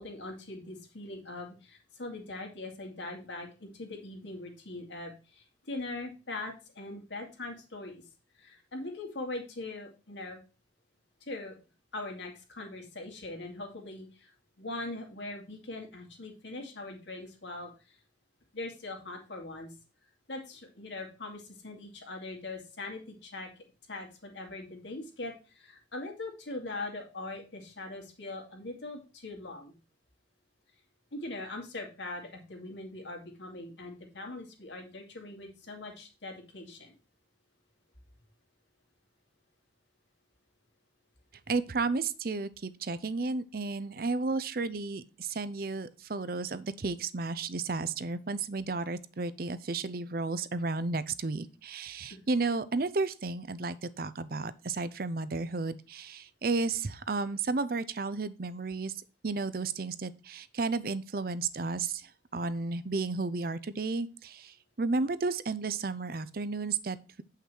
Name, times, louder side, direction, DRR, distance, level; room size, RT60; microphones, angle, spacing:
voice 1, 0.0-8.0 8.4-10.4 11.2-11.6 11.9-14.3 14.6-17.7 18.5-19.7 20.3-23.5 23.9-29.7 31.1-36.9 52.1-52.2, left 2 dB, 90° left, 2.5 m, -41 dB
voice 2, 41.5-58.9 59.2-67.2, right 3 dB, 55° right, 0.6 m, -33 dB
8.3 x 5.8 x 4.5 m
head